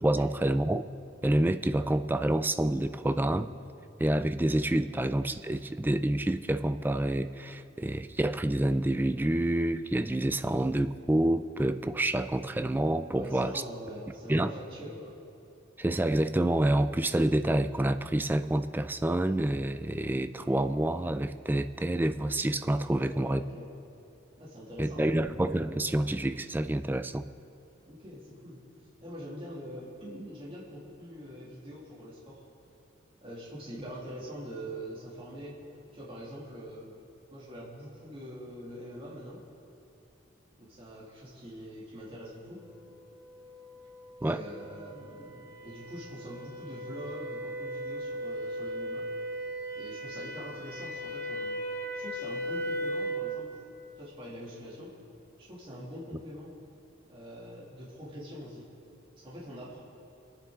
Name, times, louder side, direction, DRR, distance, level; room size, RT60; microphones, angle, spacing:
voice 1, 0.0-0.9 1.2-3.5 4.0-13.6 14.3-14.5 15.8-23.4 24.8-27.3 44.2-44.4, right 1 dB, 10° right, 10 dB, 0.3 m, -28 dB
voice 2, 13.1-15.2 22.9-23.7 24.4-25.1 27.8-28.6 29.0-32.4 33.2-35.6 35.9-36.9 37.3-39.4 40.6-42.6 44.2-49.1 49.7-51.6 51.9-53.5 54.0-55.0 55.4-56.5 57.1-58.7 59.2-59.8, equal, 30° right, -7 dB, 2.6 m, -43 dB
sound 1, 43.4-53.3, equal, 10° left, 3.2 m, -37 dB
24.5 x 9.4 x 3.8 m, 2.6 s
head